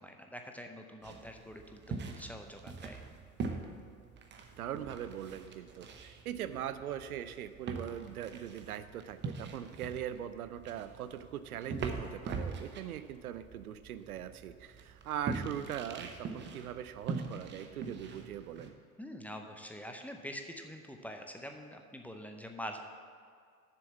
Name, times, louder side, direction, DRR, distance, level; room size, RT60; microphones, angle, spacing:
voice 1, 0.0-3.0 19.0-22.8, equal, 5° left, 4 dB, 0.6 m, -45 dB
sound 1, 1.0-18.7, right 4 dB, 25° right, 0.9 m, -43 dB
voice 2, 4.6-18.7, right 10 dB, 75° right, 12 dB, 0.6 m, -41 dB
7.0 x 6.9 x 7.1 m, 2.1 s
hypercardioid pair, 85°, 44 cm